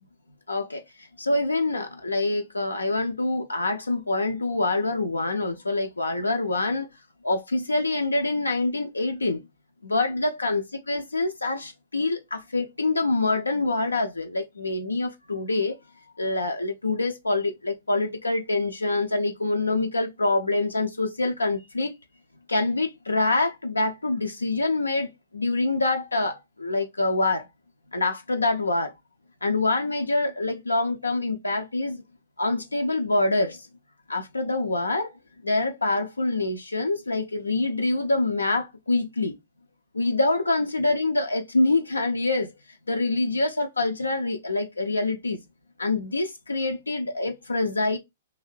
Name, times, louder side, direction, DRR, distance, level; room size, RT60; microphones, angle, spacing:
voice 1, 0.5-0.8 1.2-6.9 7.2-9.4 9.8-10.6 10.9-15.8 16.2-21.9 22.5-27.5 27.9-28.9 29.4-32.0 32.4-33.6 34.1-35.1 35.4-39.3 39.9-42.5 42.9-45.4 45.8-48.0, left 2 dB, 80° left, 0.3 m, -25 dB
2.6 x 2.4 x 3.0 m
figure-of-eight pair, 110°, 0 cm